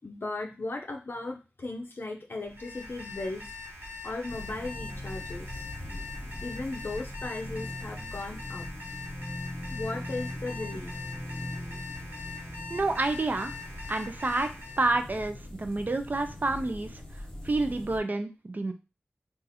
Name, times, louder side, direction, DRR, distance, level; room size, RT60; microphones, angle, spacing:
voice 1, 0.0-3.5 4.0-5.7 6.4-8.7 9.7-11.0, left 2 dB, 65° left, 2 dB, 0.5 m, -37 dB
Alarm, 2.4-14.9, left 3 dB, 70° right, 1.2 m, -43 dB
sound 1, 4.3-18.0, left 1 dB, 20° left, 1.0 m, -41 dB
voice 2, 12.7-13.5 13.9-16.9 17.4-18.7, right 2 dB, 50° right, 7 dB, 0.4 m, -29 dB
2.7 x 2.4 x 4.1 m, 0.30 s
wide cardioid pair, 75°, 4 cm